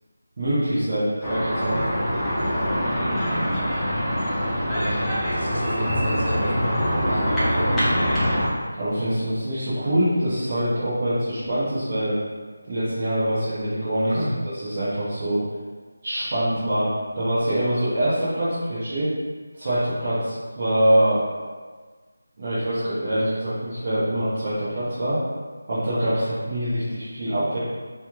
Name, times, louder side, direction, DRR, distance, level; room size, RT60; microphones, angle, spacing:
voice 1, 0.4-1.8 8.8-12.1 12.7-14.2 14.6-15.4 16.0-19.1 19.6-21.3 22.4-25.2 25.7-27.6, right 1 dB, 30° right, -13 dB, 0.9 m, -24 dB
sound 1, 1.2-8.5, equal, 5° left, 0.6 m, -24 dB
voice 2, 4.7-6.7 7.0-7.8 14.1-14.4, right 1 dB, 90° right, -5 dB, 1.3 m, -30 dB
3.2 x 3.0 x 3.5 m, 1.4 s
figure-of-eight pair, 175°, 0 cm